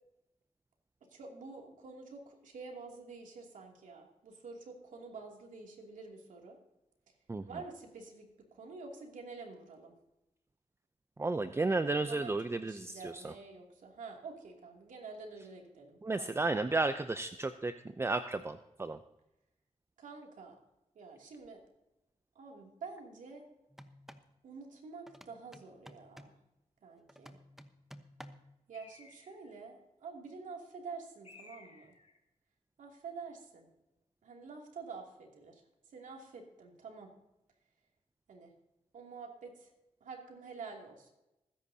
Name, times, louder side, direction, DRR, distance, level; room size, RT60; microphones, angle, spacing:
voice 1, 1.1-6.6 7.5-9.9 11.4-11.5 12.0-16.3 20.0-20.6 20.9-21.6 22.3-23.4 24.4-26.3 26.8-27.4 28.7-31.9 32.8-33.7 34.2-35.6 35.9-37.1 38.3-38.5 38.9-39.7 40.0-41.1, right 4 dB, 80° right, 1 dB, 2.7 m, -48 dB
voice 2, 11.2-13.3 16.0-19.0, right 3 dB, 20° right, 10 dB, 0.6 m, -33 dB
sound 1, 23.7-24.3 25.1-26.4 27.1-28.5, equal, 5° right, 1.0 m, -53 dB
Bird, 28.7-29.6 31.2-32.2, left 3 dB, 50° left, 3.4 m, -57 dB
20.0 x 10.5 x 2.8 m, 0.94 s
cardioid pair, 70°, 13 cm